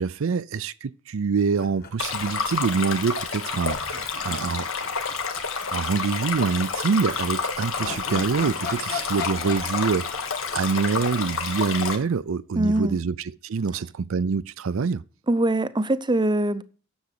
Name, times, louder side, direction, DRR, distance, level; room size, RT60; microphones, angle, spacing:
voice 1, 0.0-4.7 5.7-10.1 10.5-15.0, right 5 dB, 70° right, 0.5 m, -25 dB
sound 1, 1.6-2.9 3.2-3.3 3.7-5.9 6.2-6.3 7.3-11.6, left 5 dB, 50° left, 2.0 m, -39 dB
Stream, 2.0-12.0, left 5 dB, 75° left, 1.8 m, -29 dB
voice 2, 12.5-13.0 15.3-16.6, right 1 dB, 20° right, 0.6 m, -22 dB
10.0 x 7.1 x 6.7 m
head